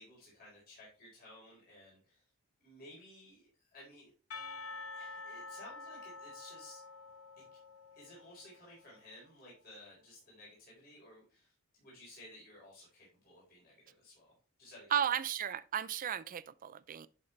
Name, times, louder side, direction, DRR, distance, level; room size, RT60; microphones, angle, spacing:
voice 1, 0.0-2.2 2.6-4.1 4.9-6.8 8.0-14.9, left 1 dB, 45° left, 4.3 m, -56 dB
Percussion, 4.3-9.2, left 3 dB, 85° left, 0.7 m, -48 dB
voice 2, 14.9-17.1, right 9 dB, 40° right, 0.4 m, -34 dB
11.0 x 5.5 x 3.2 m
head